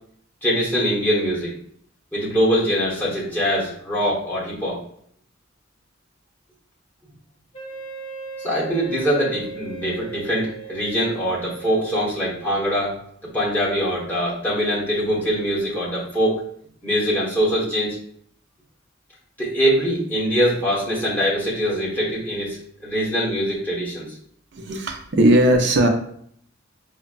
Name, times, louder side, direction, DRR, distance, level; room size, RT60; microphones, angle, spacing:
voice 1, 0.4-1.5 2.1-4.8 8.4-13.0 13.3-16.4 16.8-17.9 19.4-24.2 25.2-25.3, equal, 10° left, -6 dB, 1.1 m, -23 dB
Wind instrument woodwind instrument, 7.5-12.6, right 5 dB, 30° left, 0.8 m, -38 dB
voice 2, 24.5-25.9, right 1 dB, 55° right, 4 dB, 0.5 m, -18 dB
5.0 x 2.1 x 2.4 m, 0.64 s
head